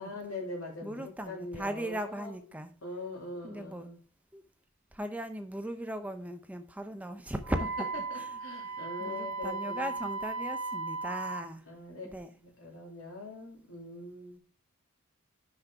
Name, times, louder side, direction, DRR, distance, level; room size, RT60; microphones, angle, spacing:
voice 1, 0.0-4.0 8.1-9.9 11.7-14.4, left 2 dB, 80° left, 1 dB, 2.8 m, -42 dB
voice 2, 0.8-2.7 3.4-3.9 4.3-4.4 4.9-7.9 8.1-8.4 8.7-11.6 12.0-12.3, right 1 dB, 5° right, 8 dB, 0.6 m, -38 dB
Wind instrument woodwind instrument, 7.4-11.5, right 3 dB, 75° right, 0.9 m, -36 dB
5.9 x 5.2 x 5.5 m, 0.39 s
head